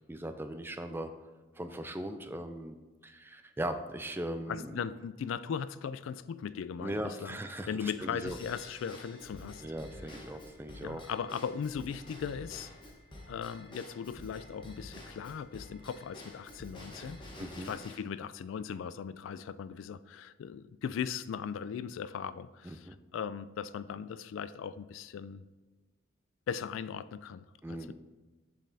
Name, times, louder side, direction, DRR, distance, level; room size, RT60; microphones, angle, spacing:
voice 1, 0.1-1.1 1.6-2.8 3.0-4.7 6.8-8.4 9.6-11.0 17.4-17.7 22.6-23.0 27.6-27.9, right 1 dB, 10° right, 7 dB, 0.4 m, -39 dB
voice 2, 4.5-7.4 7.7-9.6 10.8-12.7 13.3-25.4 26.5-27.9, left 7 dB, 75° left, 15 dB, 0.3 m, -38 dB
Drum kit / Drum / Bell, 8.3-18.0, left 1 dB, 25° left, 1.0 m, -49 dB
7.3 x 7.3 x 2.7 m, 1.3 s
head